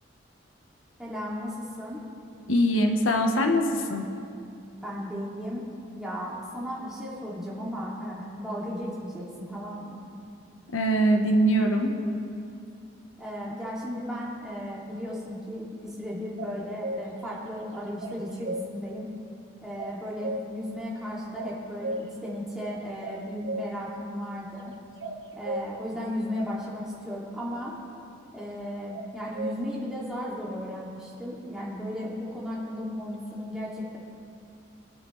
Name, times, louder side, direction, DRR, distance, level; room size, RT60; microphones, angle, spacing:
voice 1, 1.0-2.0 4.8-5.7 5.9-10.0 13.2-19.1 19.6-24.7 25.4-27.8 28.3-34.0, equal, 5° right, -7 dB, 2.4 m, -35 dB
voice 2, 2.5-4.0 10.7-11.9, equal, 85° left, 4 dB, 1.1 m, -22 dB
sound 1, 16.4-17.1 18.0-18.6 19.8-20.5 21.4-22.1 23.0-23.7 25.0-25.6 28.9-29.6, right 2 dB, 65° right, 1.0 m, -34 dB
23.0 x 8.6 x 3.2 m, 2.5 s
head